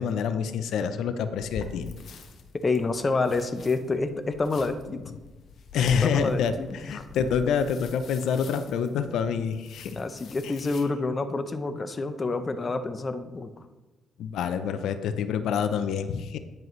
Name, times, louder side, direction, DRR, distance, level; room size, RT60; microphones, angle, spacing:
voice 1, 0.0-1.9 5.7-10.0 10.4-10.5 14.2-16.4, left 7 dB, 80° left, 10 dB, 0.5 m, -27 dB
sound 1, 1.3-10.8, left 4 dB, 60° left, 0.9 m, -45 dB
voice 2, 2.6-5.0 6.0-7.1 10.0-13.6, left 3 dB, 30° left, 9 dB, 0.6 m, -28 dB
9.4 x 7.5 x 3.1 m, 1.2 s
cardioid pair, 90°, 0 cm